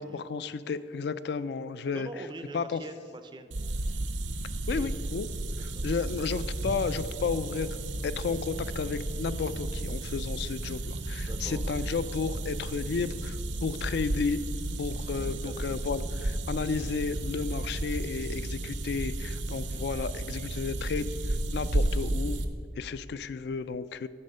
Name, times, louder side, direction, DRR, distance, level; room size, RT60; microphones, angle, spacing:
voice 1, 0.0-2.1 2.5-2.8 4.7-5.3 5.6-7.7 8.0-14.4 14.8-22.4 22.8-24.1, left 5 dB, 60° left, 14 dB, 0.3 m, -32 dB
voice 2, 1.9-3.5 4.7-5.0 5.5-5.9 11.2-11.7 15.1-15.8, right 2 dB, 25° right, 9 dB, 0.4 m, -44 dB
sound 1, 3.5-22.4, right 1 dB, 75° right, 0.7 m, -33 dB
9.8 x 4.2 x 6.4 m, 2.4 s
head